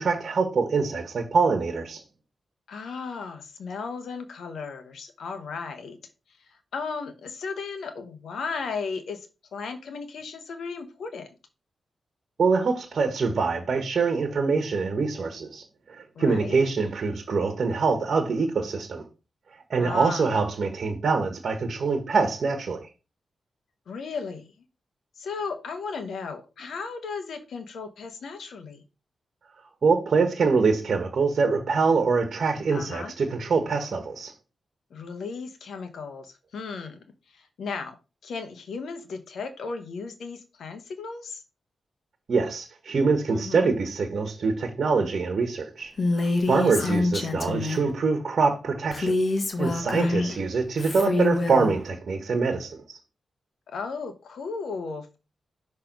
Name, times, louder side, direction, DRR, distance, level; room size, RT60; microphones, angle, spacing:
voice 1, 0.0-2.0 12.4-15.6 15.9-19.1 19.7-22.9 29.8-34.3 42.3-49.2 49.6-53.0, right 4 dB, 65° right, 1.2 m, -24 dB
voice 2, 2.7-6.0 6.4-11.3 16.1-16.6 19.8-20.3 23.9-24.5 25.2-28.8 32.7-33.1 34.9-38.0 38.2-41.4 43.3-43.7 46.5-47.0 49.8-50.4 53.7-55.2, left 4 dB, 80° left, 1.1 m, -35 dB
Female speech woman speaking, 46.0-47.9 48.9-50.3 50.8-51.7, left 2 dB, 50° left, 1.3 m, -26 dB
5.9 x 3.3 x 5.1 m
cardioid pair, 50°, 0 cm